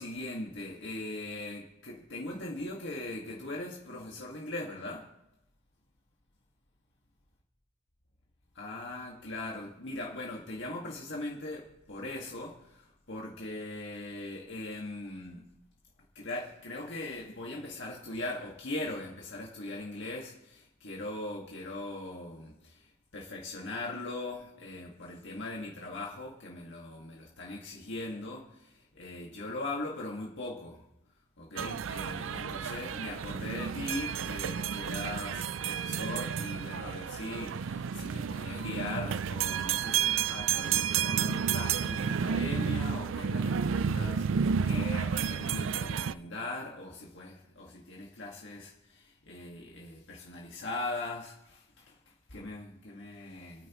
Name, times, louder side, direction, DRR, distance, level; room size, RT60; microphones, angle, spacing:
voice 1, 0.0-5.1 8.5-15.5 16.2-30.9 31.4-53.7, left 2 dB, 60° left, 2.0 m, -40 dB
sound 1, 31.6-46.1, right 7 dB, 65° right, 0.4 m, -31 dB
27.5 x 9.4 x 3.1 m
head